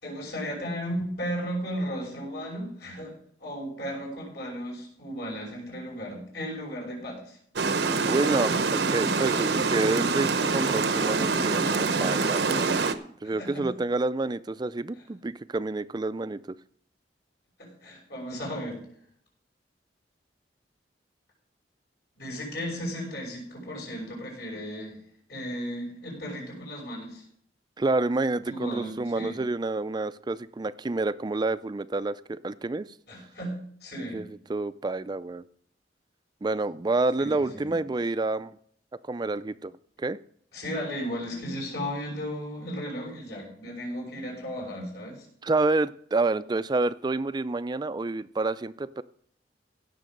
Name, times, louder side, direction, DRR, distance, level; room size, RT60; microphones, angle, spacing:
voice 1, 0.0-3.1 3.4-7.4 13.4-13.7 17.6-18.8 22.2-25.0 25.3-27.2 28.4-29.4 33.1-34.3 37.2-37.7 40.5-45.3, equal, 65° left, -3 dB, 6.1 m, -35 dB
Water, 7.6-12.9, right 4 dB, 75° right, 0.8 m, -25 dB
voice 2, 8.0-12.7 13.2-16.6 27.8-32.9 34.1-35.4 36.4-38.6 39.1-39.7 40.0-40.2 45.4-49.0, right 2 dB, 25° right, 15 dB, 0.4 m, -28 dB
16.0 x 6.7 x 5.2 m, 0.63 s
head